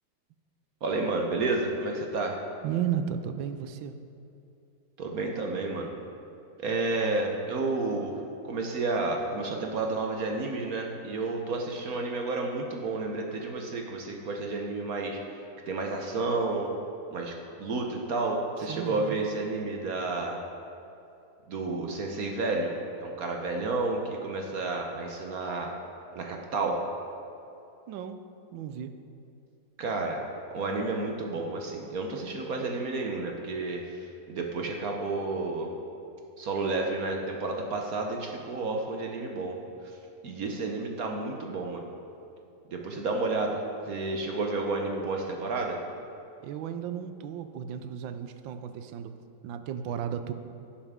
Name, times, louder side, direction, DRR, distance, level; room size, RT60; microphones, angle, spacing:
voice 1, 0.8-2.4 5.0-5.9 6.6-8.2 8.5-15.2 15.7-16.7 17.1-20.4 21.5-25.7 26.1-26.8 29.8-30.2 30.5-35.7 36.4-39.6 40.2-41.8 42.7-45.8, right 3 dB, 60° right, 1 dB, 1.1 m, -31 dB
voice 2, 2.6-3.9 18.6-19.2 27.9-28.2 28.5-28.9 46.4-49.2 49.4-50.3, right 9 dB, 80° right, 9 dB, 1.3 m, -34 dB
16.0 x 7.1 x 3.6 m, 2.7 s
omnidirectional pair, 2.1 m